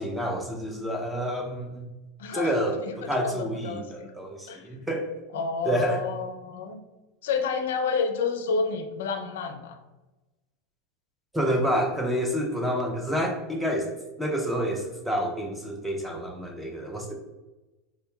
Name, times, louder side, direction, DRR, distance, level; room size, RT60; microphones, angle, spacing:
voice 1, 0.0-1.9 2.3-2.8 3.1-5.1 5.6-6.1 11.3-13.9 14.2-17.2, equal, 5° right, 1 dB, 0.4 m, -28 dB
voice 2, 2.2-4.1 4.5-4.6 5.3-6.8 7.2-9.8, left 5 dB, 90° left, 5 dB, 0.4 m, -30 dB
3.8 x 2.7 x 2.2 m, 1.1 s
supercardioid pair, 145°, 0 cm